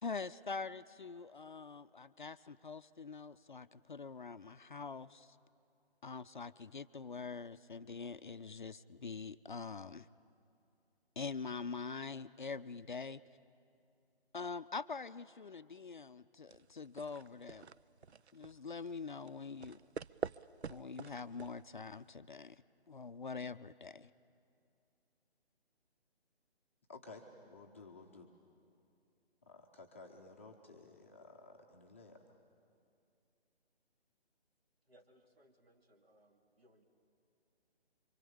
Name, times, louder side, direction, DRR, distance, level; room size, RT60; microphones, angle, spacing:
voice 1, 0.0-5.4 6.0-10.1 11.2-13.2 14.3-17.7 18.3-19.9 20.7-24.1, left 4 dB, 50° left, 14 dB, 0.5 m, -44 dB
sound 1, 16.5-22.1, right 5 dB, 85° right, 0.5 m, -47 dB
voice 2, 26.9-28.3 29.4-32.4, left 3 dB, 10° left, -1 dB, 0.7 m, -55 dB
voice 3, 34.9-36.8, equal, 70° right, 4 dB, 2.8 m, -67 dB
26.0 x 24.0 x 7.0 m, 2.5 s
figure-of-eight pair, 145°, 32 cm